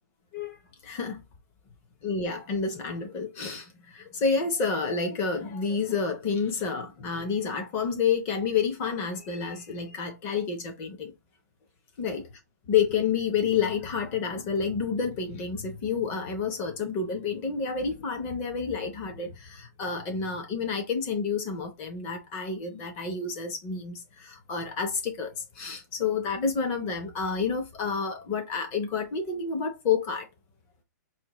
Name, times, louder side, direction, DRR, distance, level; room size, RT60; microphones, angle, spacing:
voice 1, 0.8-1.2 2.0-11.1 12.0-12.2 12.7-30.3, left 5 dB, 20° left, 0.7 m, -29 dB
4.2 x 2.1 x 3.0 m
hypercardioid pair, 170°, 10 cm